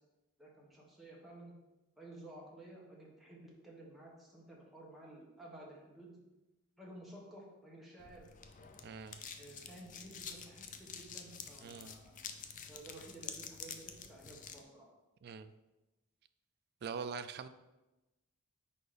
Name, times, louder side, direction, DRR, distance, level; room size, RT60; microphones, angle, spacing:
voice 1, 0.4-1.5 2.0-6.2 6.8-8.3 8.5-8.6 9.4-12.1 12.7-14.9, right 1 dB, ahead, -4 dB, 1.2 m, -53 dB
sound 1, 8.0-14.6, left 6 dB, 35° left, 0.4 m, -49 dB
voice 2, 8.8-9.2 11.6-11.9 15.2-15.5 16.8-17.5, right 5 dB, 45° right, 11 dB, 0.3 m, -43 dB
4.7 x 4.2 x 5.0 m, 1.0 s
head